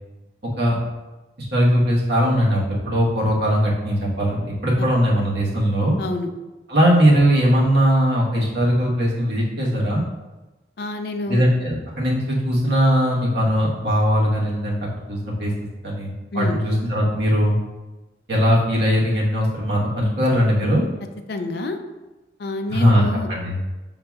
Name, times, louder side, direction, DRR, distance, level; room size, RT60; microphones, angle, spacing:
voice 1, 1.5-6.0 6.7-10.0 11.3-14.8 15.1-15.5 15.8-17.6 18.3-20.8 22.7-23.0 23.3-23.6, equal, 65° right, -4 dB, 1.1 m, -19 dB
voice 2, 6.0-6.3 10.8-11.4 16.3-16.6 21.3-21.8 22.4-23.3, left 2 dB, 60° left, 6 dB, 0.4 m, -27 dB
5.8 x 3.8 x 2.3 m, 1.1 s
head